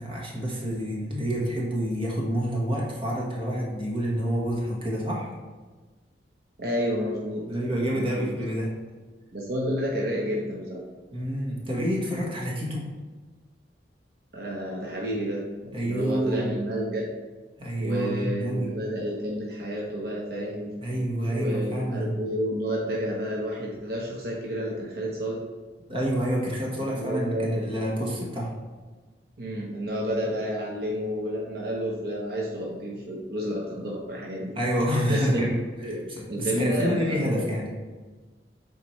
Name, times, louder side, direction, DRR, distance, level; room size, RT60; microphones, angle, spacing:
voice 1, 0.0-5.3 7.5-8.7 11.1-12.9 15.7-16.5 17.6-18.7 20.8-22.2 25.9-28.5 34.5-35.6 35.9-37.7, equal, 30° right, -3 dB, 1.4 m, -28 dB
voice 2, 6.6-7.5 7.9-8.3 9.3-10.8 14.3-17.1 17.8-20.8 21.3-25.4 26.8-27.7 29.4-34.6 35.1-35.5 35.8-37.5, equal, 60° right, -3 dB, 1.0 m, -30 dB
7.2 x 4.2 x 3.2 m, 1.3 s
head